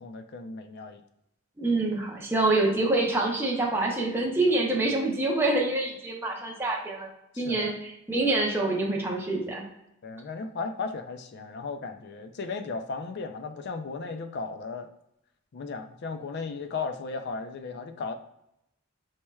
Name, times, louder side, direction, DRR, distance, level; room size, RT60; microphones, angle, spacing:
voice 1, 0.0-1.0 7.3-7.8 10.0-14.9 15.5-18.1, left 4 dB, 55° left, 8 dB, 0.4 m, -35 dB
voice 2, 1.6-7.1 7.4-9.6, right 2 dB, 10° right, -2 dB, 0.6 m, -26 dB
4.3 x 3.0 x 2.3 m, 0.81 s
head